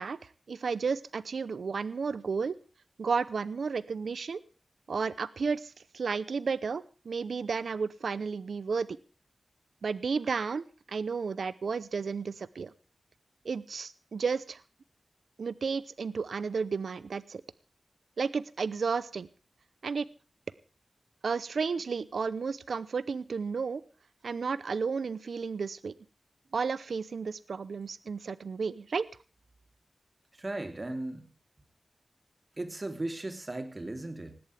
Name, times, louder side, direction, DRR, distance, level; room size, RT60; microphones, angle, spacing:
voice 1, 0.0-2.6 3.0-4.4 4.9-8.9 9.8-12.7 13.4-14.6 15.4-17.4 18.2-19.3 19.8-20.1 21.2-23.8 24.2-25.9 26.5-29.1, right 5 dB, 85° right, 18 dB, 0.7 m, -32 dB
voice 2, 30.3-31.3 32.6-34.4, right 2 dB, 30° right, 8 dB, 3.2 m, -37 dB
19.0 x 16.5 x 3.4 m, 0.35 s
wide cardioid pair, 95°, 0 cm